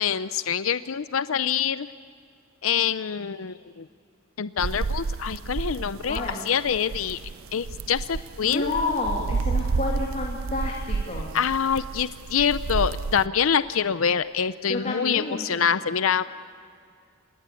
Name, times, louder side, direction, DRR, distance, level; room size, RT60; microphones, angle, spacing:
voice 1, 0.0-1.9 2.6-3.9 4.4-6.2 6.5-7.2 7.5-8.7 11.3-16.2, left 7 dB, 80° left, 13 dB, 0.6 m, -25 dB
sound 1, 4.6-13.3, right 4 dB, 85° right, 0.5 m, -30 dB
voice 2, 6.0-6.4 8.4-11.4 14.7-15.5, left 2 dB, 40° left, -2 dB, 2.8 m, -30 dB
27.5 x 21.0 x 8.4 m, 2.3 s
head